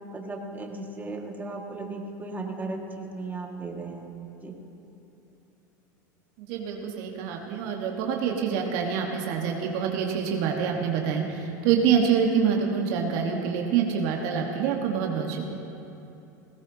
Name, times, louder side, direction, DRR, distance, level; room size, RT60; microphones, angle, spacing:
voice 1, 0.1-4.1 4.4-4.6, right 2 dB, 15° right, 0 dB, 1.9 m, -36 dB
voice 2, 6.4-15.5, right 7 dB, 65° right, 1 dB, 1.5 m, -26 dB
19.0 x 16.5 x 2.9 m, 2.9 s
hypercardioid pair, 95°, 10 cm